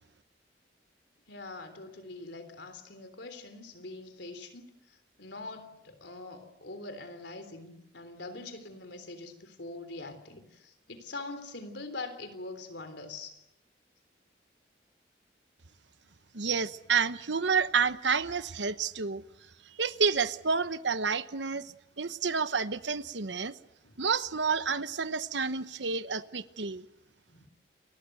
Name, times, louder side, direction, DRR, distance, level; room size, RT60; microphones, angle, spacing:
voice 1, 1.3-13.4 23.8-24.0 27.3-27.5, left 2 dB, 80° left, 3.6 m, -43 dB
voice 2, 16.3-19.2 19.7-23.5 24.0-26.8, right 5 dB, 85° right, 1.1 m, -29 dB
29.0 x 21.5 x 7.9 m
head